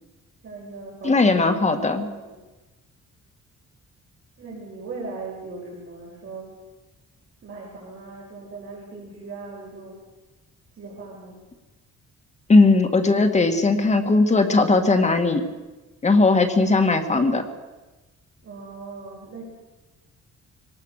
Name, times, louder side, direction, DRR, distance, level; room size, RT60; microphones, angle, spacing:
voice 1, 0.4-1.3 2.2-2.4 4.4-6.6 7.4-10.0 10.7-11.4 18.4-19.4, right 3 dB, 45° right, -4 dB, 6.1 m, -38 dB
voice 2, 1.0-2.1 12.5-15.4 16.0-17.4, left 3 dB, 25° left, 5 dB, 2.0 m, -18 dB
24.5 x 19.0 x 6.7 m, 1.1 s
wide cardioid pair, 170°, 29 cm